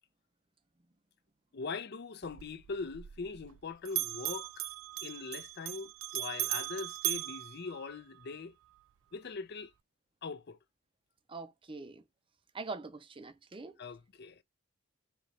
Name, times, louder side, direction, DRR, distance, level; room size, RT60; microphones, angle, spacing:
voice 1, 1.5-4.7 5.0-8.6 9.1-9.7 10.2-10.6 13.8-14.4, left 4 dB, 50° left, 0.5 m, -41 dB
Bell, 2.2-3.6 3.9-8.3, right 17 dB, 70° right, 0.4 m, -38 dB
voice 2, 11.3-12.0 12.5-13.8, right 3 dB, 25° right, 0.6 m, -43 dB
4.0 x 2.9 x 3.1 m
head